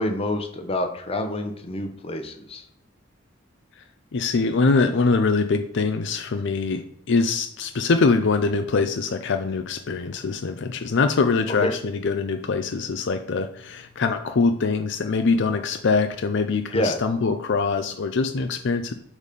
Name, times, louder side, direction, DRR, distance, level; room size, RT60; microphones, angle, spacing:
voice 1, 0.0-2.6 11.6-11.7 16.7-17.0, left 1 dB, 30° left, 5 dB, 0.8 m, -27 dB
voice 2, 4.1-6.8 7.1-18.9, left 4 dB, 65° left, 7 dB, 0.5 m, -23 dB
5.0 x 4.1 x 5.2 m, 0.74 s
head